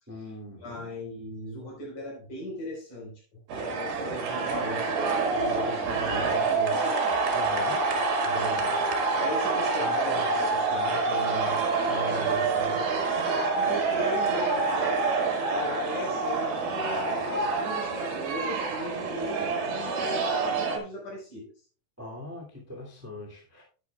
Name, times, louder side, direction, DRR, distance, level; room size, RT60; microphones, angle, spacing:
voice 1, 0.1-0.9 7.3-7.9 22.0-23.6, left 1 dB, 5° right, -1 dB, 1.5 m, -41 dB
voice 2, 0.6-7.4 7.8-8.8 9.2-13.0 13.5-21.5, left 1 dB, 50° left, -1 dB, 5.8 m, -38 dB
sound 1, 3.5-20.8, right 4 dB, 75° right, 3.8 m, -27 dB
11.5 x 9.7 x 2.4 m, 0.37 s
omnidirectional pair, 4.6 m